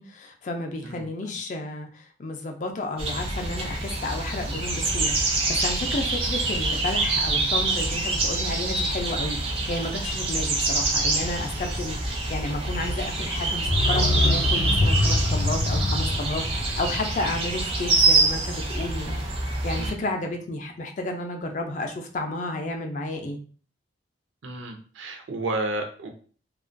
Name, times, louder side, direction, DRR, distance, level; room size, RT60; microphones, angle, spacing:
voice 1, 0.0-19.2 19.6-23.4, left 2 dB, 40° left, 4 dB, 0.3 m, -32 dB
voice 2, 0.8-1.4 19.8-20.1 24.4-26.1, right 2 dB, 80° right, 4 dB, 0.5 m, -32 dB
sound 1, 3.0-19.9, right 2 dB, 30° right, 0.4 m, -26 dB
sound 2, 13.6-18.3 18.6-18.7, left 2 dB, 85° left, 0.6 m, -25 dB
2.3 x 2.2 x 2.5 m, 0.42 s
head